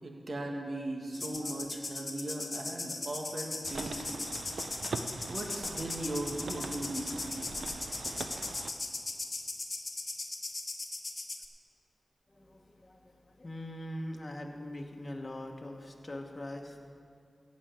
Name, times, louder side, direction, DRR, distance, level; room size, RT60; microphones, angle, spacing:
voice 1, 0.0-4.2 5.3-7.5, right 1 dB, 60° right, 0 dB, 1.9 m, -38 dB
sound 1, 1.1-11.5, left 3 dB, 55° left, 1.0 m, -39 dB
sound 2, 3.6-8.7, right 4 dB, 90° right, 0.5 m, -42 dB
voice 2, 12.3-17.0, left 1 dB, 35° left, 1 dB, 1.2 m, -42 dB
14.5 x 5.2 x 8.9 m, 2.4 s
cardioid pair, 50°, 0 cm